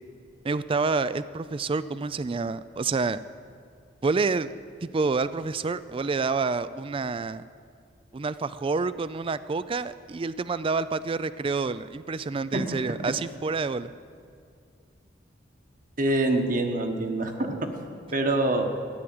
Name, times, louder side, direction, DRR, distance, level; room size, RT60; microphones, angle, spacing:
voice 1, 0.4-3.2 4.0-4.5 4.8-7.4 8.1-13.9, right 4 dB, 30° right, 15 dB, 0.4 m, -28 dB
voice 2, 16.0-17.5 18.1-18.6, right 2 dB, 45° right, 4 dB, 1.4 m, -25 dB
13.5 x 10.0 x 7.7 m, 2.3 s
head